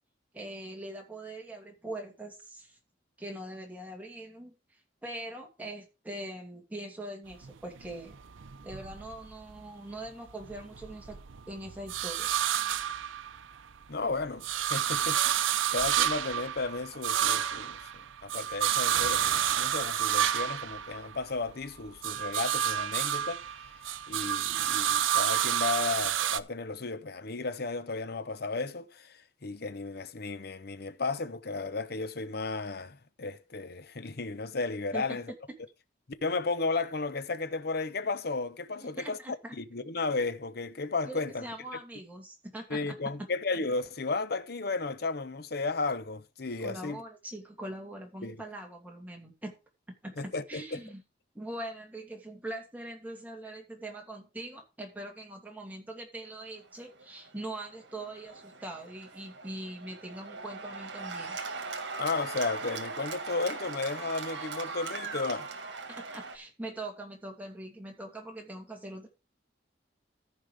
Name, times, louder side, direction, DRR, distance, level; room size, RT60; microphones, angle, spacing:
voice 1, 0.3-2.8 3.2-4.5 5.0-8.2 8.6-11.2 11.5-12.4 34.9-35.2 38.8-39.5 41.1-43.0 46.6-49.5 50.0-51.0 51.3-61.4 65.9-69.1, right 1 dB, 10° right, 2.6 m, -42 dB
sound 1, 7.3-9.7 10.1-13.7 14.1-21.5 21.8-26.4, right 10 dB, 90° right, 0.6 m, -30 dB
voice 2, 13.9-23.4 24.1-35.3 36.2-39.2 39.5-41.4 42.7-47.0 48.2-48.4 50.2-50.8 62.0-65.5, left 3 dB, 55° left, 0.8 m, -34 dB
Cheering / Applause, 56.7-66.4, right 4 dB, 65° right, 1.8 m, -40 dB
14.0 x 5.2 x 5.0 m
head